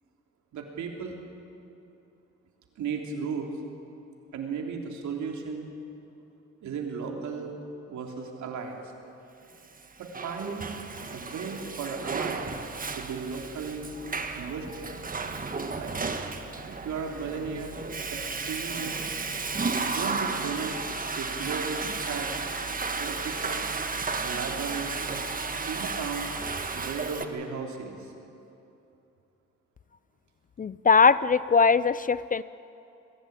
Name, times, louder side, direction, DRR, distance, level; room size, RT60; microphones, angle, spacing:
voice 1, 0.5-1.2 2.8-3.5 4.3-5.7 6.6-7.5 7.9-8.8 10.0-10.8 11.1-12.4 13.0-13.9 14.3-14.9 15.8-15.9 16.7-17.8 18.1-19.0 19.8-20.8 21.1-22.5 23.0-23.5 24.2-25.0 25.6-26.3 26.7-28.1, right 5 dB, 70° right, 1 dB, 3.5 m, -35 dB
Water / Toilet flush, 9.8-27.3, right 4 dB, 30° right, 1.6 m, -33 dB
voice 2, 30.6-32.4, left 5 dB, 30° left, 17 dB, 0.4 m, -21 dB
22.5 x 15.5 x 9.0 m, 2.8 s
cardioid pair, 90°, 30 cm